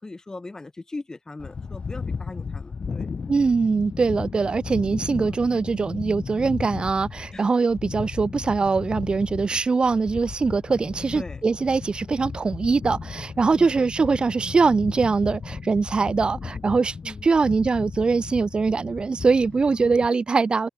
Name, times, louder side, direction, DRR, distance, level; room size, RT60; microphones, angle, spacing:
voice 1, 0.0-3.1 5.2-5.4 7.3-7.5 11.1-11.4 13.6-13.8 17.0-17.3 19.7-20.0, left 2 dB, 20° left, 2.2 m, -39 dB
sound 1, 1.4-20.1, left 5 dB, 40° left, 1.5 m, -35 dB
voice 2, 3.3-20.7, right 4 dB, 30° right, 0.7 m, -22 dB
cardioid pair, 80°, 3 cm